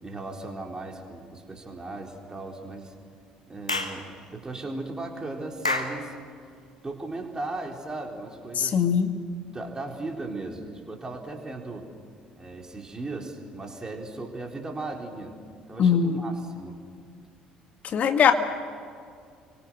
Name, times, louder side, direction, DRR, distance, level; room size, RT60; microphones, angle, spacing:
voice 1, 0.0-2.9 3.5-6.1 6.8-8.8 9.5-11.9 12.4-15.4 15.7-16.8, right 2 dB, 20° right, 1 dB, 4.2 m, -37 dB
Clapping / Chirp tweet, 3.7-4.0 5.6-6.0, left 2 dB, 90° left, 1.3 m, -27 dB
voice 2, 8.6-9.1 15.8-16.2 17.8-18.3, left 7 dB, 45° left, 7 dB, 2.0 m, -21 dB
29.5 x 24.5 x 6.5 m, 2.2 s
figure-of-eight pair, 55°, 3 cm